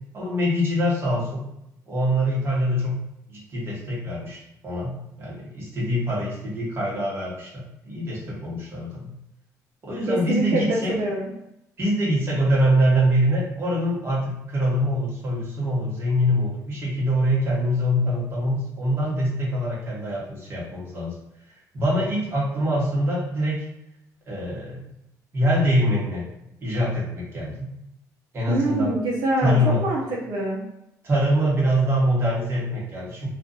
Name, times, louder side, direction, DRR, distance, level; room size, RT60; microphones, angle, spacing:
voice 1, 0.1-1.4 1.9-3.0 3.3-9.1 9.8-11.0 11.8-21.1 21.7-23.6 24.3-24.8 25.3-26.2 26.6-27.7 28.3-28.9 29.4-29.9 31.0-33.3, equal, 35° right, -5 dB, 1.2 m, -24 dB
voice 2, 10.1-11.3 28.5-30.6, right 1 dB, 70° right, -5 dB, 0.8 m, -25 dB
2.5 x 2.4 x 3.9 m, 0.82 s
cardioid pair, 140°, 7 cm